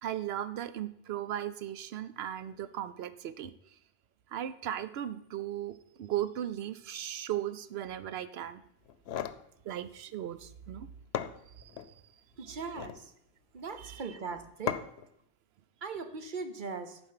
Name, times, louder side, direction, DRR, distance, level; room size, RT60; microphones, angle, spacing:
voice 1, 0.0-3.5 4.3-8.6 9.6-10.9 11.6-11.8 12.4-12.6 13.8-14.0, right 11 dB, 85° right, 13 dB, 0.8 m, -37 dB
sound 1, 8.9-9.4 10.7-10.8 11.1-11.9 12.6-13.1 14.7-15.1, left 9 dB, 85° left, 0.8 m, -36 dB
voice 2, 12.4-13.1 13.5-14.8 15.8-17.0, right 4 dB, 55° right, 8 dB, 0.9 m, -39 dB
11.0 x 4.7 x 5.7 m, 0.75 s
omnidirectional pair, 1.0 m